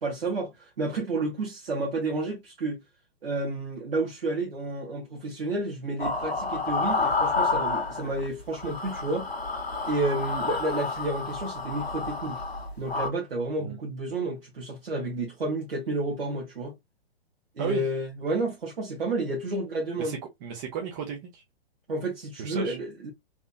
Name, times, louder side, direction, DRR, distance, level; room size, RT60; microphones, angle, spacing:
voice 1, 0.0-2.8 3.2-9.3 9.8-12.4 12.8-16.8 17.5-20.2 21.9-23.1, right 2 dB, 65° right, 1.3 m, -30 dB
sound 1, 6.0-8.3 8.5-13.1, left 3 dB, 80° left, 0.8 m, -29 dB
voice 2, 20.0-21.4 22.4-22.8, right 8 dB, 20° right, 0.4 m, -34 dB
3.2 x 2.8 x 2.4 m
figure-of-eight pair, 115°, 31 cm